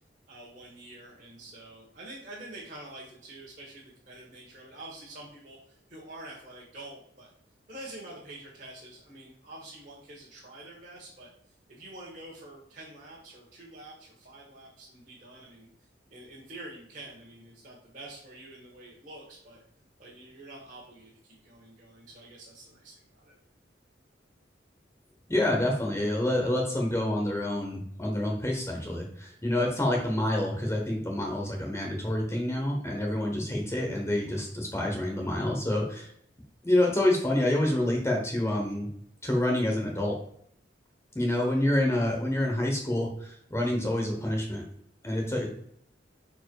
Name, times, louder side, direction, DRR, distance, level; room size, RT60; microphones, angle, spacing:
voice 1, 0.3-7.3 7.7-11.3 11.7-15.7 16.1-19.6 20.0-23.3, right 2 dB, 45° right, -6 dB, 1.6 m, -47 dB
voice 2, 25.3-36.1 36.6-38.9 39.2-40.2 41.1-44.6 45.0-45.5, left 1 dB, 15° left, 0 dB, 1.0 m, -27 dB
5.6 x 4.6 x 4.6 m, 0.68 s
head